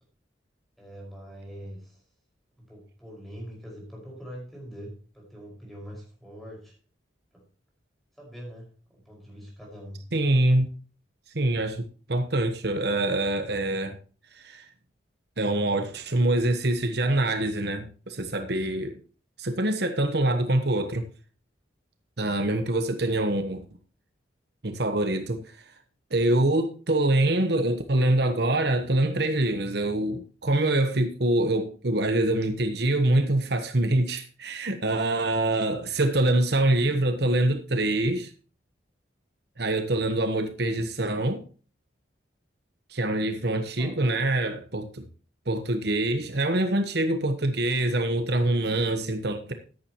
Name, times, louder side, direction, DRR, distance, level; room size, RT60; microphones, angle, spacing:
voice 1, 0.8-2.0 2.6-6.8 7.3-7.4 8.2-10.1 43.6-44.3, equal, ahead, 5.4 m, -43 dB
voice 2, 10.1-10.7 11.3-14.0 14.3-14.6 15.4-19.0 19.4-21.1 22.2-23.6 24.6-25.6 26.1-38.3 39.6-41.4 42.9-45.1 45.5-49.5, right 1 dB, 55° right, 1.1 m, -25 dB
14.0 x 10.0 x 3.0 m
head